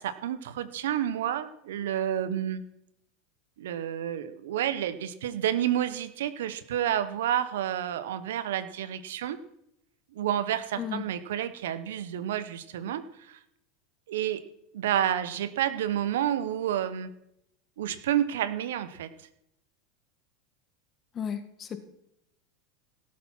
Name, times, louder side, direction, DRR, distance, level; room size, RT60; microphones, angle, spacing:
voice 1, 0.0-2.6 3.6-9.4 10.1-13.4 14.1-14.4 14.7-17.1 17.8-19.1, right 10 dB, 80° right, 14 dB, 1.0 m, -30 dB
voice 2, 21.1-21.8, left 8 dB, 35° left, 10 dB, 1.8 m, -34 dB
17.5 x 7.6 x 5.7 m, 0.77 s
hypercardioid pair, 100°, 0 cm